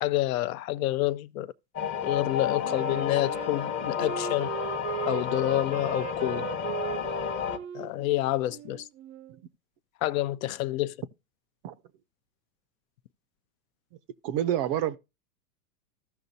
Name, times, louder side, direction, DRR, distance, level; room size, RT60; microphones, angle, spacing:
voice 1, 0.0-1.5 2.0-4.5 5.0-6.5 7.7-8.9 10.0-11.0, left 15 dB, 60° left, 0.6 m, -28 dB
sound 1, 1.8-7.6, left 7 dB, 25° left, 0.8 m, -31 dB
Wind instrument woodwind instrument, 2.6-9.4, right 15 dB, 75° right, 0.7 m, -38 dB
voice 2, 14.2-15.0, right 11 dB, 35° right, 0.5 m, -27 dB
15.5 x 5.7 x 2.7 m
supercardioid pair, 130°, 48 cm